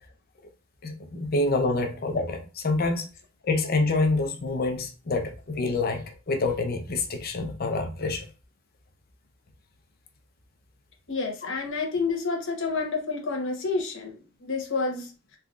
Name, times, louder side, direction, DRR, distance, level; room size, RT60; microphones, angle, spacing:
voice 1, 0.8-3.1 3.4-8.3, left 3 dB, 45° left, 0.6 m, -27 dB
voice 2, 11.1-15.1, left 4 dB, 60° left, 1.1 m, -29 dB
3.7 x 3.2 x 2.4 m
head